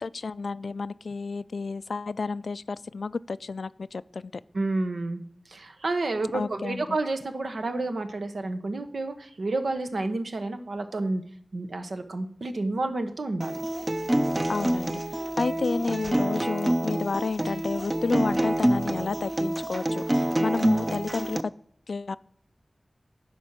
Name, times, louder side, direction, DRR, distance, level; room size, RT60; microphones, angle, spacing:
voice 1, 0.0-4.3 6.3-6.9 14.5-21.5 21.9-22.2, left 4 dB, 85° left, 17 dB, 0.3 m, -31 dB
voice 2, 4.5-11.2 11.5-13.6, right 2 dB, 85° right, 8 dB, 1.0 m, -30 dB
Acoustic guitar, 13.4-21.4, right 1 dB, 30° right, 0.6 m, -26 dB
11.0 x 4.6 x 7.3 m, 0.65 s
wide cardioid pair, 80°, 0 cm